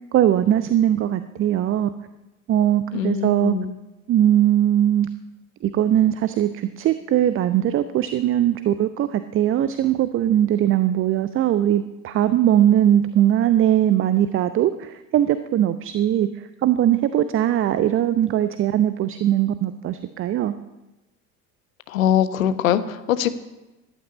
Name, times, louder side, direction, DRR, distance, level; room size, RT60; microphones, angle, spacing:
voice 1, 0.1-1.9 2.5-3.5 4.1-5.1 5.6-20.5, right 11 dB, 30° right, 12 dB, 0.8 m, -20 dB
voice 2, 2.9-3.7 21.9-23.3, left 10 dB, 65° left, 12 dB, 1.3 m, -22 dB
15.0 x 11.0 x 8.6 m, 1.0 s
figure-of-eight pair, 70°, 43 cm